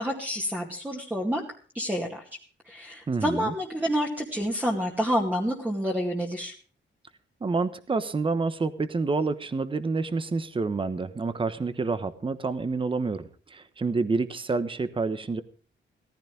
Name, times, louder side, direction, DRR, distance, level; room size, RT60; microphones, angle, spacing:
voice 1, 0.0-1.4 1.7-2.2 2.7-6.5, equal, 10° right, -1 dB, 2.2 m, -28 dB
voice 2, 3.1-3.5 7.4-15.4, right 4 dB, 25° right, 12 dB, 1.1 m, -28 dB
18.0 x 14.5 x 3.4 m, 0.41 s
wide cardioid pair, 160°, 20 cm